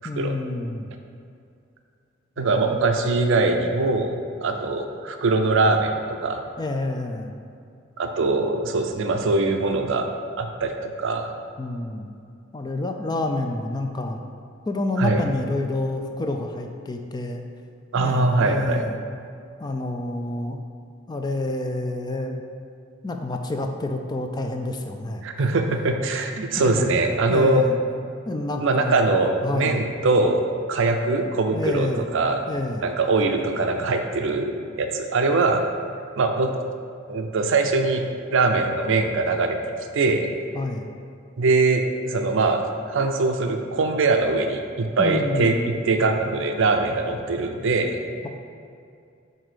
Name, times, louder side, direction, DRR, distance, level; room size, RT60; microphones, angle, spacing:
voice 1, 0.0-0.9 2.4-2.8 6.6-7.3 11.6-12.1 12.5-14.2 14.7-17.4 17.9-19.0 19.6-20.6 21.1-22.4 23.0-25.3 26.6-26.9 27.3-27.8 28.3-29.1 29.4-29.8 31.5-32.1 32.5-32.8 40.5-40.9 45.0-45.7, left 2 dB, 20° left, 4 dB, 0.3 m, -28 dB
voice 2, 2.4-6.4 8.0-10.1 10.4-11.3 15.0-15.2 17.9-18.8 25.2-27.7 28.6-31.9 32.1-32.4 32.8-35.6 36.2-36.6 37.1-38.0 38.3-39.6 39.9-40.3 41.4-42.6 42.9-48.0, right 3 dB, 65° right, 5 dB, 0.5 m, -22 dB
7.3 x 2.7 x 5.0 m, 2.4 s
head